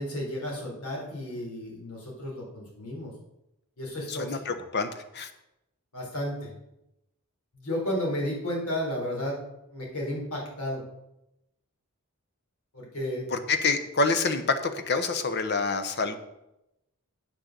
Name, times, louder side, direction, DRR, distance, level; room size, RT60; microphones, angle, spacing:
voice 1, 0.0-3.1 3.8-4.4 5.9-6.5 7.5-9.4 9.7-10.8 12.7-13.4, equal, 80° left, -2 dB, 3.9 m, -33 dB
voice 2, 4.1-5.3 13.3-16.1, left 4 dB, 50° left, 9 dB, 1.0 m, -27 dB
8.6 x 6.4 x 6.7 m, 0.87 s
head